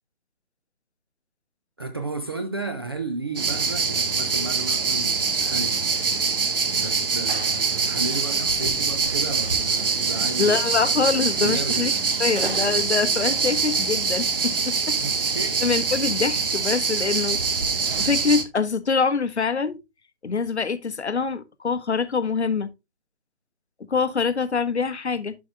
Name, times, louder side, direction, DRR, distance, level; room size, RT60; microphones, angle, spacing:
voice 1, 1.8-5.8 6.8-10.9 11.4-11.9 15.0-15.6, right 3 dB, 25° right, 0.5 m, -33 dB
sound 1, 3.4-18.4, right 5 dB, 55° right, 1.2 m, -24 dB
voice 2, 10.4-11.9 12.2-15.0 15.6-17.4 18.0-19.8 20.2-22.7 23.9-25.4, left 5 dB, 80° left, 1.0 m, -24 dB
11.5 x 5.2 x 2.3 m
figure-of-eight pair, 145°, 33 cm